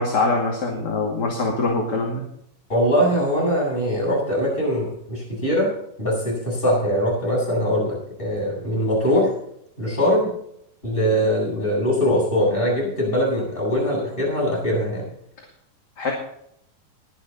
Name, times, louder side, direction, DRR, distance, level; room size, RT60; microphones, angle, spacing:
voice 1, 0.0-2.2 16.0-16.1, left 3 dB, 35° left, -1 dB, 2.4 m, -23 dB
voice 2, 2.7-5.7 6.0-9.3 9.8-10.3 10.8-15.1, equal, 15° left, -5 dB, 8.1 m, -22 dB
21.5 x 9.4 x 4.2 m, 0.72 s
omnidirectional pair, 3.8 m